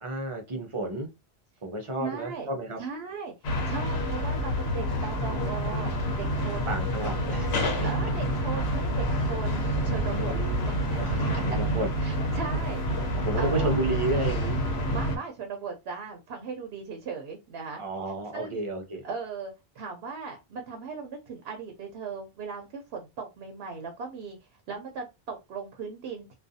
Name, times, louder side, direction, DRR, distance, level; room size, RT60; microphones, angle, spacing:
voice 1, 0.0-1.1 1.6-2.8 6.7-7.9 10.1-10.7 10.9-11.9 13.2-14.6 17.7-19.0, right 2 dB, 40° right, 3 dB, 0.5 m, -32 dB
voice 2, 2.0-2.5 2.8-6.7 7.0-7.1 7.8-10.4 10.6-10.8 12.0-13.8 14.9-17.8 18.3-18.6 19.0-24.4 24.7-26.3, right 5 dB, 85° right, 4 dB, 0.8 m, -38 dB
sound 1, 3.4-15.2, equal, 85° left, 0.9 m, -28 dB
2.4 x 2.2 x 2.6 m, 0.24 s
omnidirectional pair, 1.0 m